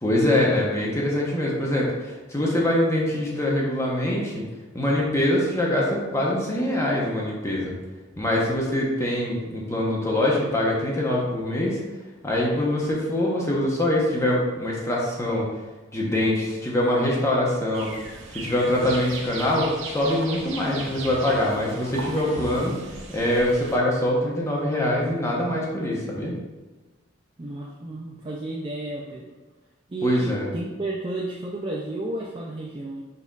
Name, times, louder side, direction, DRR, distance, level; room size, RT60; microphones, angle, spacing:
voice 1, 0.0-4.4 4.7-7.7 8.2-11.8 12.2-15.5 15.9-17.9 18.3-22.7 23.1-26.4 30.0-30.5, left 1 dB, 15° left, -4 dB, 0.9 m, -24 dB
sound 1, 17.7-23.8, right 2 dB, 70° right, 0.7 m, -37 dB
voice 2, 27.4-29.3 29.9-33.0, right 2 dB, 25° right, -3 dB, 0.4 m, -32 dB
5.3 x 4.1 x 2.4 m, 1.2 s
head